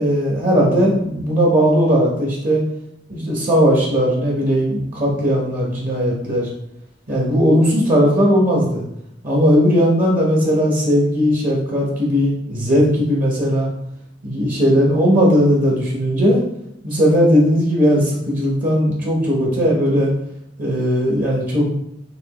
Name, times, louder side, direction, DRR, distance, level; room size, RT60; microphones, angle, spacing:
voice 1, 0.0-2.6 3.1-6.5 7.1-8.8 9.2-13.7 14.2-16.4 16.8-20.1 20.6-21.7, equal, 45° right, -4 dB, 1.0 m, -17 dB
6.0 x 3.0 x 3.0 m, 0.80 s
head